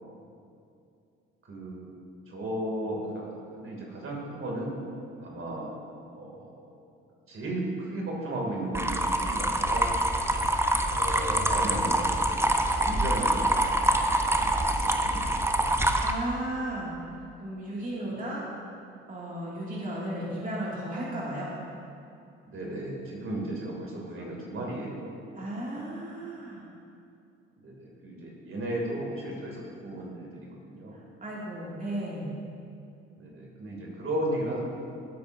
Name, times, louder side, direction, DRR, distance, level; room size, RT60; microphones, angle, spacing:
voice 1, 1.4-1.9 2.3-3.3 3.6-4.8 5.2-5.7 6.1-6.7 7.3-9.9 10.9-15.4 18.0-18.2 22.5-25.3 27.6-31.0 33.2-34.6, right 1 dB, 45° right, -2 dB, 2.7 m, -35 dB
sound 1, 8.7-16.1, right 1 dB, 10° right, 0.9 m, -25 dB
voice 2, 16.0-17.0 17.4-18.4 19.1-21.6 25.4-26.6 31.2-32.3, right 1 dB, 30° right, -6 dB, 2.4 m, -34 dB
17.0 x 8.6 x 2.7 m, 2.6 s
hypercardioid pair, 50°, 29 cm